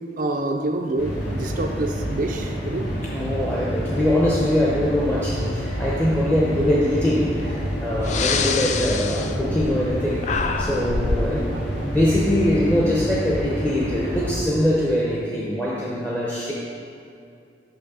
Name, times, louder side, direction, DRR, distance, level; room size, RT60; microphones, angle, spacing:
voice 1, 0.2-2.9 11.3-11.8, right 2 dB, 50° right, 3 dB, 0.4 m, -27 dB
sound 1, 1.0-14.4, equal, 80° left, 1.9 m, -28 dB
voice 2, 3.1-11.5 11.8-16.5, left 1 dB, 10° left, -6 dB, 0.7 m, -23 dB
Breathing, 7.5-7.6 8.0-10.0 10.2-11.3, left 5 dB, 40° left, 0.4 m, -26 dB
6.2 x 5.5 x 6.1 m, 2.5 s
head